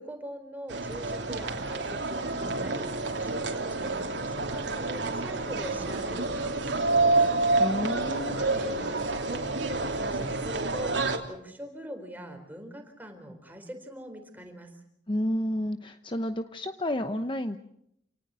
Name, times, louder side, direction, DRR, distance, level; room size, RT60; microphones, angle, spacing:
voice 1, 0.0-7.3 8.1-14.8, equal, 10° right, 5 dB, 4.3 m, -43 dB
sound 1, 0.7-11.2, right 3 dB, 80° right, 3.1 m, -28 dB
voice 2, 7.6-8.4 15.1-17.6, left 1 dB, 25° left, 9 dB, 0.9 m, -30 dB
28.5 x 19.0 x 7.7 m, 0.75 s
head